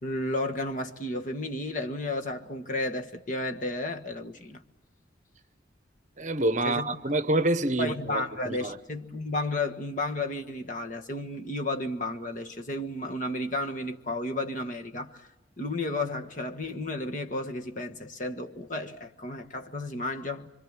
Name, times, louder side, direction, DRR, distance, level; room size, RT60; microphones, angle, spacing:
voice 1, 0.0-4.6 6.6-6.9 7.8-15.3 15.6-20.5, left 2 dB, 45° left, 1.6 m, -32 dB
voice 2, 6.2-8.8, right 1 dB, 40° right, 1.0 m, -27 dB
26.5 x 25.0 x 7.5 m
head